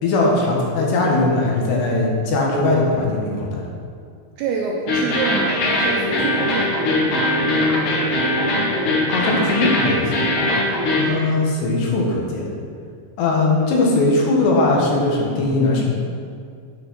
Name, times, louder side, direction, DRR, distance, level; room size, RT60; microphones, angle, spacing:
voice 1, 0.0-3.6 9.1-10.1 10.9-12.5 13.2-15.8, left 2 dB, 75° left, -2 dB, 3.5 m, -19 dB
voice 2, 4.4-6.7, right 4 dB, 80° right, 0 dB, 2.4 m, -26 dB
sound 1, 4.9-11.1, left 1 dB, 55° left, 2.5 m, -20 dB
8.9 x 6.0 x 6.2 m, 2.2 s
omnidirectional pair, 5.2 m